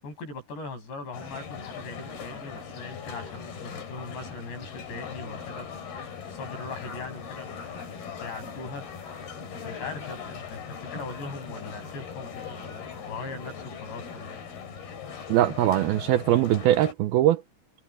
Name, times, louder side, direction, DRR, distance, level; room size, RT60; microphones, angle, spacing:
voice 1, 0.0-5.7 6.0-8.9 9.5-14.4, left 3 dB, 85° left, 9.6 m, -40 dB
sound 1, 1.1-16.9, left 6 dB, 65° left, 5.8 m, -40 dB
voice 2, 15.3-17.4, right 13 dB, 75° right, 2.5 m, -21 dB
omnidirectional pair, 4.8 m